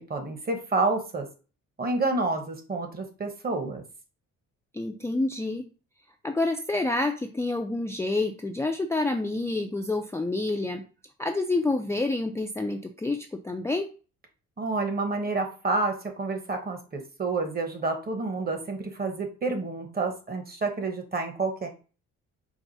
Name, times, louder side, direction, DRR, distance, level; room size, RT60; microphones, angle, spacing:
voice 1, 0.1-1.3 1.8-3.8 14.6-21.7, right 3 dB, 30° right, 5 dB, 1.1 m, -29 dB
voice 2, 4.7-5.6 6.2-10.8 11.2-13.9, left 2 dB, 10° left, 4 dB, 0.4 m, -28 dB
4.7 x 2.1 x 4.0 m, 0.36 s
cardioid pair, 90°, 30 cm